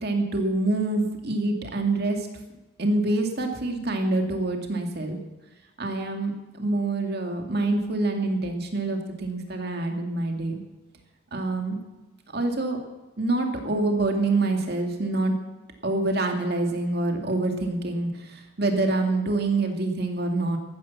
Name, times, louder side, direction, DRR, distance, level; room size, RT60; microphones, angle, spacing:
voice 1, 0.0-2.2 2.8-5.2 5.8-10.6 11.3-11.8 12.3-12.8 13.2-15.3 15.8-20.6, right 2 dB, 50° right, 3 dB, 2.3 m, -26 dB
14.0 x 13.0 x 7.4 m, 1.1 s
head